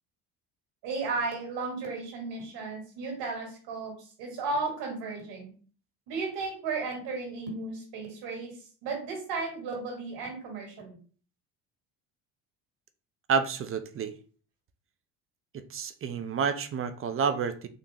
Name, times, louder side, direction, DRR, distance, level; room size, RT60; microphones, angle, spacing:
voice 1, 0.8-5.5 6.1-8.5 8.8-11.0, right 3 dB, 80° right, 1 dB, 1.6 m, -34 dB
voice 2, 13.3-14.1 15.5-17.7, right 6 dB, 35° right, 10 dB, 0.4 m, -29 dB
4.0 x 2.5 x 2.8 m, 0.42 s
supercardioid pair, 85°, 41 cm